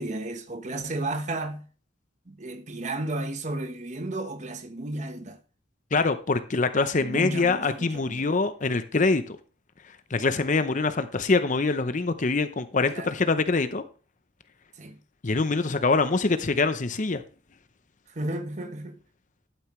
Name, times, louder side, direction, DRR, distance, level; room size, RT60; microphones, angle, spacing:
voice 1, 0.0-1.6 2.3-5.4 7.0-8.4 12.9-13.1 14.8-15.0 18.1-19.0, right 2 dB, 40° right, 1.1 m, -33 dB
voice 2, 5.9-9.4 10.1-13.8 15.2-17.2, left 3 dB, 40° left, 0.7 m, -24 dB
11.5 x 9.1 x 3.2 m
head